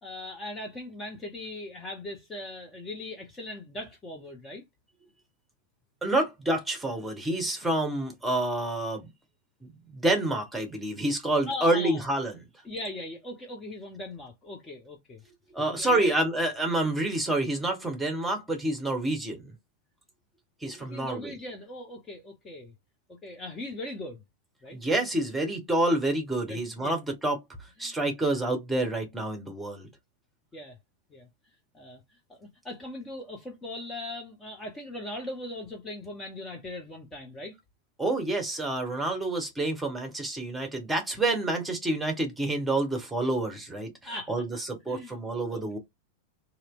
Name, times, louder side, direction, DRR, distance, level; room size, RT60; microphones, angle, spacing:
voice 1, 0.0-4.6 11.5-12.0 12.6-15.2 15.7-16.2 20.6-22.7 23.2-24.2 24.6-24.8 26.4-26.9 27.8-28.0 30.5-30.8 31.1-31.3 31.7-32.0 32.3-37.5 44.0-44.3 44.9-45.1 45.5-45.8, left 2 dB, 20° left, 0.9 m, -39 dB
voice 2, 6.0-9.1 9.6-12.3 15.5-19.5 20.6-21.3 24.7-27.4 27.8-29.9 38.0-45.8, right 2 dB, 5° right, 1.3 m, -28 dB
3.0 x 3.0 x 2.4 m
figure-of-eight pair, 90°, 0 cm